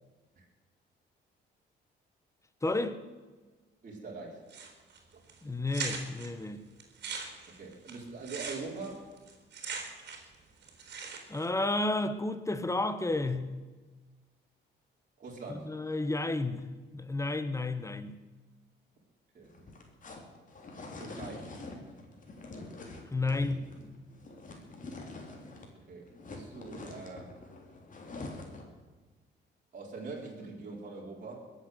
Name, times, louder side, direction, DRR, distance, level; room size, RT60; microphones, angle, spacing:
voice 1, 2.6-3.0 5.4-6.6 11.3-13.5 15.6-16.6 16.9-18.2 23.1-23.7, left 2 dB, 15° left, 1.3 m, -31 dB
voice 2, 3.8-4.4 5.1-5.2 7.5-9.0 15.2-15.7 19.3-19.5 21.0-21.5 25.8-27.3 29.7-31.4, right 3 dB, 40° right, 4.4 m, -43 dB
sound 1, 4.5-5.0 5.3-5.4 5.7-6.3 6.8-10.4 10.6-11.5, right 5 dB, 60° right, 4.1 m, -40 dB
sound 2, 19.4-25.8 26.0-28.8, left 2 dB, 40° left, 3.4 m, -45 dB
21.5 x 8.3 x 8.0 m
cardioid pair, 90°, 20 cm